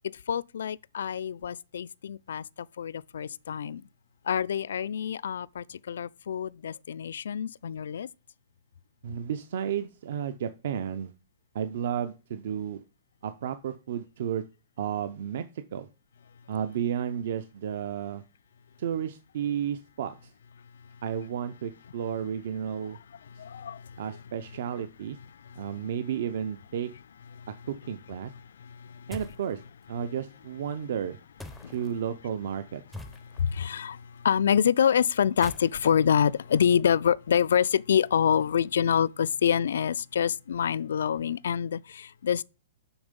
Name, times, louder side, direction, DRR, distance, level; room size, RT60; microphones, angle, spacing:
voice 1, 0.3-2.4 2.8-3.8 4.3-8.1 23.3-24.0 25.5-25.6 27.4-27.5 28.6-29.1 31.6-31.7 33.4-42.4, left 8 dB, 65° left, 0.3 m, -26 dB
voice 2, 9.0-11.1 11.5-12.8 13.2-14.4 14.8-15.9 16.5-18.2 18.8-20.3 21.0-23.0 23.4-23.5 24.0-25.2 25.6-26.9 27.7-28.3 29.1-29.6 29.9-31.2 31.7-32.8, right 9 dB, 45° right, 0.6 m, -32 dB
sound 1, 29.1-29.5 31.4-31.9 32.9-33.6 35.2-37.2, left 2 dB, ahead, 0.5 m, -45 dB
7.0 x 6.3 x 5.2 m
hypercardioid pair, 180°, 0 cm